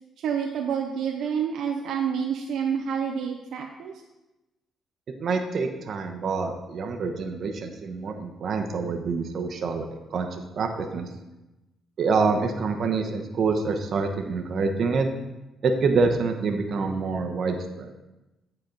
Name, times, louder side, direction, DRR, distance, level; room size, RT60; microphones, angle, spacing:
voice 1, 0.2-3.9, right 7 dB, 80° right, 2 dB, 0.5 m, -28 dB
voice 2, 5.2-9.9 10.1-11.1 12.0-15.1 15.6-17.9, right 4 dB, 55° right, 5 dB, 0.8 m, -26 dB
8.8 x 4.3 x 3.9 m, 1.0 s
cardioid pair, 90°, 0 cm